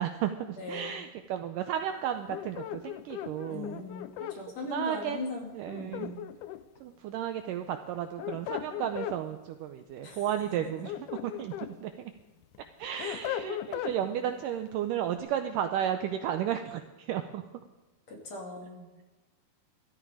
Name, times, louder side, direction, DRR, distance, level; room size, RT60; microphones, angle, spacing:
voice 1, 0.0-3.9 4.2-4.4 4.7-5.2 5.5-6.1 6.8-10.9 11.2-11.5 11.8-12.1 12.8-17.4, right 10 dB, 80° right, 7 dB, 1.9 m, -33 dB
voice 2, 0.6-1.0 3.5-5.5 5.7-6.2 10.0-10.2 10.5-10.6 13.0-13.2 14.0-14.2 18.1-18.9, left 2 dB, 45° left, 0 dB, 3.4 m, -39 dB
sound 1, 2.3-4.4 5.7-6.8 8.0-9.2 10.6-11.7 12.2-14.0, left 12 dB, 90° left, 1.7 m, -37 dB
13.5 x 13.5 x 4.9 m, 1.1 s
omnidirectional pair, 4.4 m